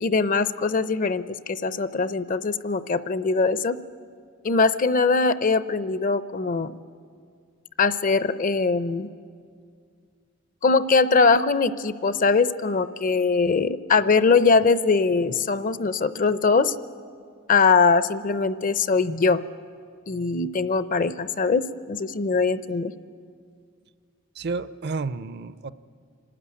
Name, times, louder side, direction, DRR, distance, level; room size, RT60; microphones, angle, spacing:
voice 1, 0.0-3.8 4.4-6.7 7.8-9.1 10.6-16.7 17.5-19.4 20.1-22.9, left 4 dB, 40° left, 15 dB, 0.6 m, -22 dB
voice 2, 24.4-25.7, right 4 dB, 50° right, 16 dB, 0.5 m, -31 dB
25.5 x 13.0 x 9.8 m, 2.2 s
head